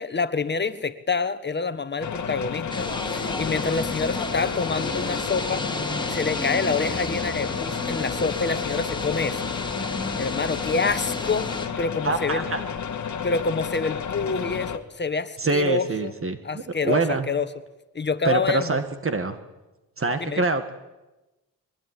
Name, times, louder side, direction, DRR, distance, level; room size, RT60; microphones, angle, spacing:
voice 1, 0.0-5.6 6.1-9.5 10.2-11.5 11.8-12.4 13.2-16.1 16.4-17.0 17.3-17.5 17.9-18.8 20.2-20.4, left 4 dB, 30° left, 12 dB, 1.5 m, -27 dB
sound 1, 2.0-14.8, left 7 dB, 50° left, 1.8 m, -31 dB
sound 2, 2.7-11.7, left 2 dB, 10° left, 2.6 m, -32 dB
voice 2, 12.0-12.6 15.4-17.3 18.2-19.4 20.0-20.7, right 3 dB, 35° right, 8 dB, 1.9 m, -25 dB
22.0 x 20.5 x 9.8 m, 1.0 s
cardioid pair, 95°, 37 cm